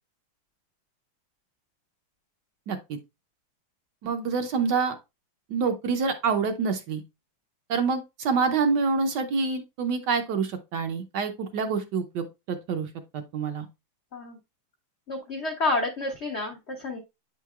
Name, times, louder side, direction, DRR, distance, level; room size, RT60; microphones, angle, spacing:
voice 1, 2.7-3.0 4.0-5.0 5.5-7.0 7.7-13.7, right 5 dB, 65° right, 1.1 m, -27 dB
voice 2, 15.1-17.0, left 2 dB, 65° left, 0.6 m, -29 dB
8.8 x 4.6 x 2.3 m
omnidirectional pair, 2.2 m